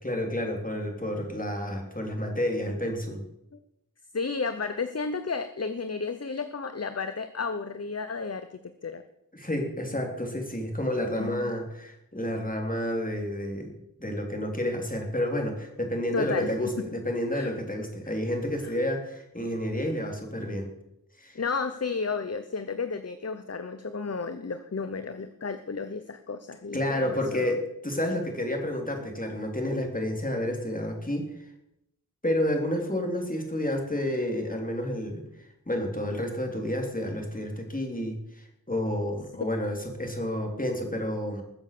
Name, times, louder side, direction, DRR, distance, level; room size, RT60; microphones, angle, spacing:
voice 1, 0.0-3.3 9.3-13.7 14.0-20.7 21.2-21.4 26.7-31.3 32.2-35.2 35.7-41.4, left 1 dB, 25° left, 2 dB, 3.6 m, -30 dB
voice 2, 4.1-9.0 11.1-11.5 16.1-16.5 17.3-17.5 18.0-18.1 18.6-18.7 21.3-27.5, left 4 dB, 45° left, 9 dB, 0.9 m, -32 dB
21.0 x 7.2 x 6.9 m, 0.85 s
wide cardioid pair, 50°, 35 cm